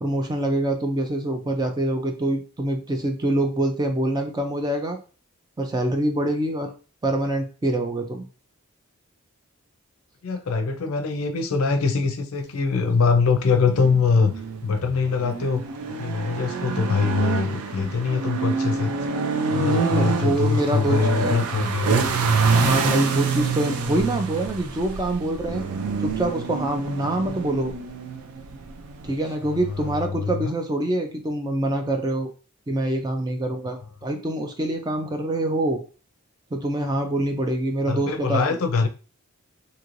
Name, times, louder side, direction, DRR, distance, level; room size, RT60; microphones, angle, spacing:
voice 1, 0.0-5.0 5.6-6.7 7.0-8.2 19.5-21.4 22.5-25.7 26.0-27.7 29.0-32.3 32.7-35.8 36.5-38.6, right 1 dB, 20° right, 0.3 m, -25 dB
voice 2, 10.2-14.3 14.6-15.6 16.0-18.9 19.5-22.1 27.0-27.2 29.4-30.5 37.9-38.9, left 4 dB, 70° left, 0.5 m, -23 dB
sound 1, 13.4-30.0, right 4 dB, 85° right, 0.4 m, -27 dB
3.0 x 2.7 x 2.5 m
head